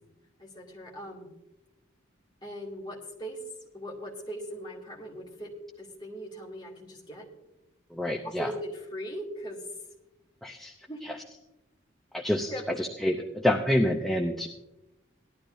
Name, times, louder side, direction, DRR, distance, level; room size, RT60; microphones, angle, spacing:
voice 1, 0.4-1.3 2.4-3.4 3.7-7.3 8.2-9.6 10.9-11.0 12.5-12.8, equal, 20° left, -3 dB, 2.3 m, -39 dB
voice 2, 7.9-8.5 10.4-10.7 11.0-11.2 12.1-12.5 12.8-14.5, left 1 dB, ahead, 1 dB, 0.5 m, -27 dB
18.0 x 12.0 x 2.6 m, 0.96 s
head